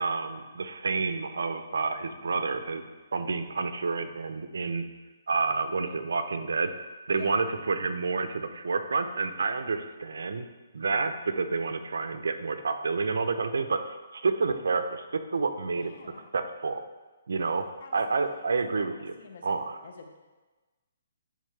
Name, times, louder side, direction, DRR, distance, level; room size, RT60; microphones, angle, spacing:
voice 1, 0.0-2.8 3.1-4.8 5.3-6.7 7.1-10.5 10.7-15.9 16.3-16.8 17.3-17.6 17.9-19.1 19.4-19.8, right 4 dB, 85° right, 9 dB, 0.5 m, -29 dB
voice 2, 7.1-7.4 15.8-16.4 17.4-18.0 18.2-20.2, left 4 dB, 55° left, 4 dB, 0.9 m, -47 dB
10.0 x 3.5 x 3.3 m, 1.2 s
hypercardioid pair, 165°, 0 cm